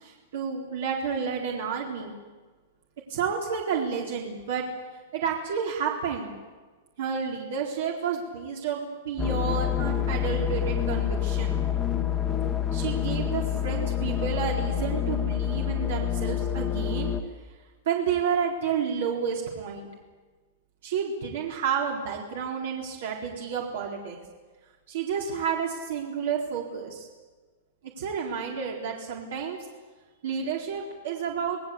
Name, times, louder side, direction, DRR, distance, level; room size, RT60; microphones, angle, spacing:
voice 1, 0.0-2.1 3.1-4.6 5.1-6.3 7.0-11.7 12.7-17.1 17.9-19.9 20.8-24.2 24.9-27.1 28.0-29.6 30.2-31.6, right 7 dB, 60° right, 0 dB, 4.0 m, -30 dB
sound 1, 9.2-17.2, left 9 dB, 10° left, 1.6 m, -27 dB
27.0 x 19.5 x 8.5 m, 1.3 s
supercardioid pair, 175°, 0 cm